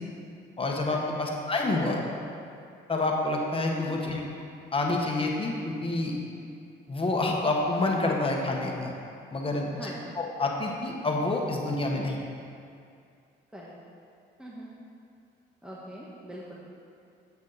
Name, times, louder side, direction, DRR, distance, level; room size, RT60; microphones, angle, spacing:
voice 1, 0.6-2.0 2.9-4.2 4.7-6.2 6.9-8.9 9.3-9.8 10.2-12.2, left 2 dB, 25° left, -1 dB, 1.5 m, -28 dB
voice 2, 3.7-4.1 9.7-10.2 13.5-13.7 14.4-14.7 15.6-16.5, equal, 5° right, -6 dB, 1.4 m, -42 dB
9.6 x 8.2 x 4.2 m, 2.5 s
cardioid pair, 90°, 20 cm